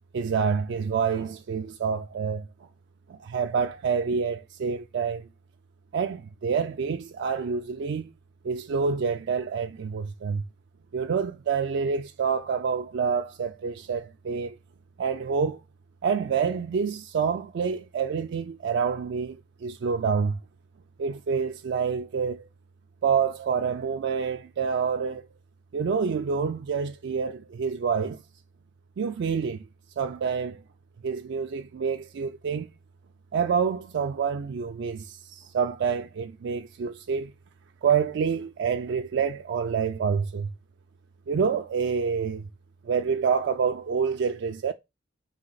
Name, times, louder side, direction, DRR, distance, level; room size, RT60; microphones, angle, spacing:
voice 1, 0.1-2.5 3.1-5.3 5.9-8.1 8.4-10.4 10.9-14.6 15.0-15.6 16.0-20.4 21.0-22.5 23.0-25.3 25.7-28.2 29.0-29.7 30.0-30.6 31.0-32.7 33.3-37.3 37.8-40.5 41.3-42.4 42.8-44.7, right 6 dB, 60° right, 0.3 m, -27 dB
4.1 x 2.8 x 3.9 m
head